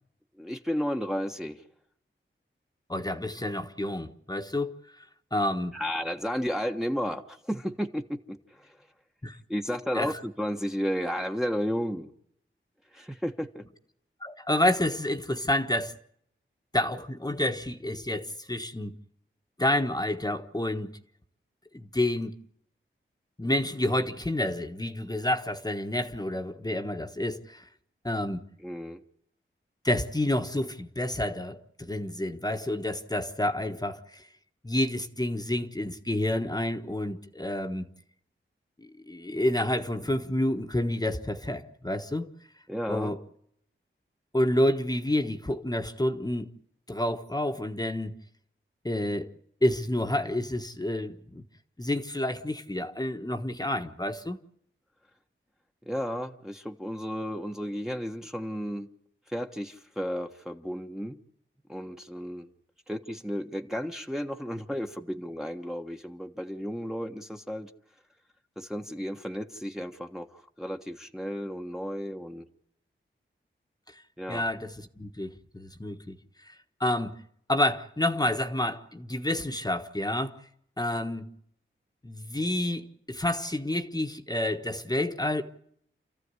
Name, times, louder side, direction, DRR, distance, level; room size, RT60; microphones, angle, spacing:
voice 1, 0.4-1.6 5.7-8.9 9.5-12.1 12.9-13.6 28.6-29.0 42.7-43.1 55.8-58.9 59.3-61.2 61.7-62.5 62.9-67.7 68.6-72.5 74.2-74.4, equal, ahead, 1.2 m, -33 dB
voice 2, 2.9-4.8 5.3-5.7 9.2-9.4 9.9-10.1 14.2-15.9 16.7-18.9 19.6-20.9 21.7-22.3 23.4-27.6 28.0-28.4 29.8-34.3 34.6-37.9 38.8-42.3 42.9-43.2 44.3-46.5 46.9-48.1 48.8-49.3 49.6-51.4 51.8-54.4 74.3-76.2 76.5-76.6 76.8-77.2 77.5-80.4 80.8-81.3 82.0-85.4, left 1 dB, 20° left, 1.3 m, -29 dB
28.5 x 14.5 x 9.7 m
wide cardioid pair, 90°, 21 cm